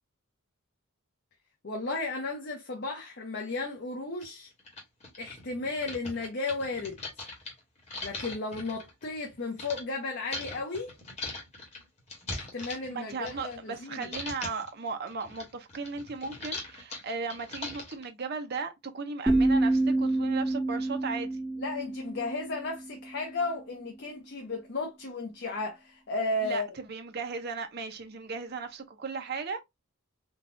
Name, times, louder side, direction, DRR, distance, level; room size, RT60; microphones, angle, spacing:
voice 1, 1.6-4.5 5.2-7.0 8.0-10.9 12.3-14.1 21.6-26.8, left 3 dB, 50° left, 0.7 m, -34 dB
sound 1, 3.5-3.6 4.2-4.3 4.6-9.8 10.3-13.8 14.0-14.7 15.1-18.1, left 2 dB, 35° left, 1.3 m, -40 dB
voice 2, 12.9-21.4 26.4-29.6, right 4 dB, 50° right, 0.6 m, -36 dB
sound 2, 19.3-23.1, right 2 dB, ahead, 0.4 m, -27 dB
3.9 x 2.3 x 2.5 m
head